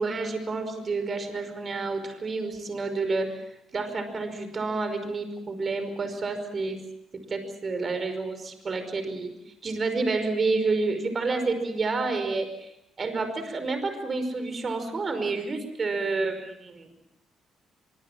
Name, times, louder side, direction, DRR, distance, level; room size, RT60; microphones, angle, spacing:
voice 1, 0.0-6.8 7.3-9.3 9.6-12.7 13.0-16.9, right 3 dB, 35° right, 8 dB, 5.1 m, -29 dB
24.5 x 24.0 x 7.3 m, 0.78 s
cardioid pair, 125°, 0 cm